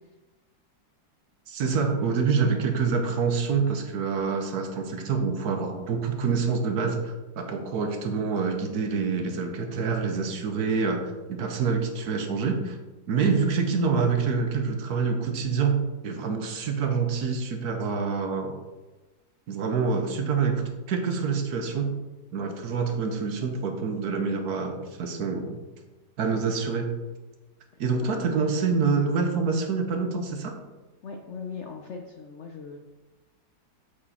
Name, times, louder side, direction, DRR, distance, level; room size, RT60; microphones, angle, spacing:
voice 1, 1.5-12.8 13.1-18.6 19.5-22.0 22.3-25.6 26.2-26.9 27.8-30.6, right 5 dB, 65° right, 5 dB, 1.3 m, -26 dB
voice 2, 28.0-28.4 31.0-32.8, left 5 dB, 70° left, 3 dB, 0.6 m, -39 dB
7.5 x 4.8 x 4.2 m, 1.2 s
omnidirectional pair, 1.9 m